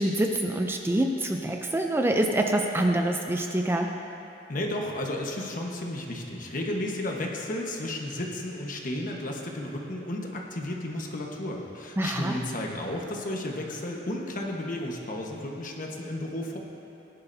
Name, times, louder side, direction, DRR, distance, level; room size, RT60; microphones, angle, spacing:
voice 1, 0.0-3.9 12.0-12.4, right 1 dB, 15° right, 2 dB, 0.5 m, -26 dB
voice 2, 4.5-16.6, left 1 dB, 45° left, 0 dB, 1.3 m, -33 dB
18.5 x 11.0 x 2.7 m, 3.0 s
head